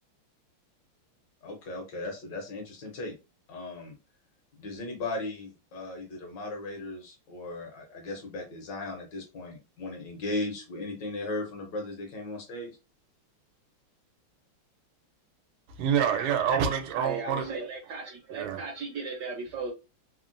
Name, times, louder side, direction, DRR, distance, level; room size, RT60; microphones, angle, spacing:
voice 1, 1.4-3.1 3.5-3.9 4.6-12.8, left 2 dB, 65° left, 1.2 m, -37 dB
voice 2, 15.8-17.6 18.3-18.6, right 8 dB, 85° right, 1.5 m, -27 dB
voice 3, 17.0-19.7, right 4 dB, 70° right, 1.0 m, -36 dB
3.6 x 2.1 x 2.5 m
omnidirectional pair, 2.4 m